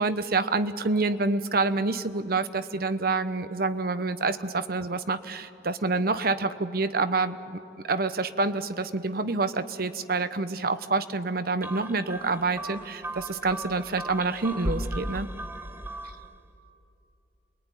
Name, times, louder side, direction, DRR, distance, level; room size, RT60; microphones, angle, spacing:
voice 1, 0.0-7.6 7.9-15.3, right 3 dB, 55° right, 11 dB, 1.0 m, -27 dB
sound 1, 11.6-16.4, right 1 dB, 15° right, 1.1 m, -36 dB
28.5 x 21.0 x 9.9 m, 2.8 s
head